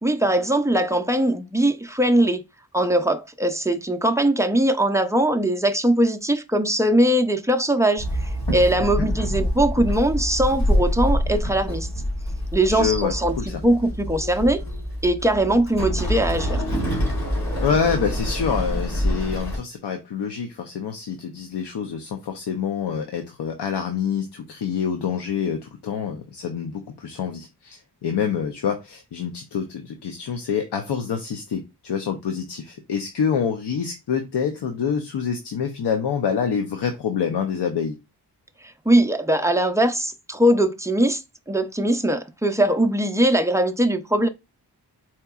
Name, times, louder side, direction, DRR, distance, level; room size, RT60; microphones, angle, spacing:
voice 1, 0.0-2.4 2.7-8.1 8.5-11.9 12.5-13.4 13.6-14.6 15.0-16.6 38.9-41.2 41.5-44.3, right 1 dB, 10° right, 0.4 m, -21 dB
Walk footsteps / Chatter / Hiss, 8.0-19.6, equal, 60° left, 2.3 m, -26 dB
voice 2, 12.7-13.6 17.6-38.0, left 7 dB, 90° left, 0.6 m, -26 dB
4.5 x 2.8 x 2.3 m
wide cardioid pair, 90°, 39 cm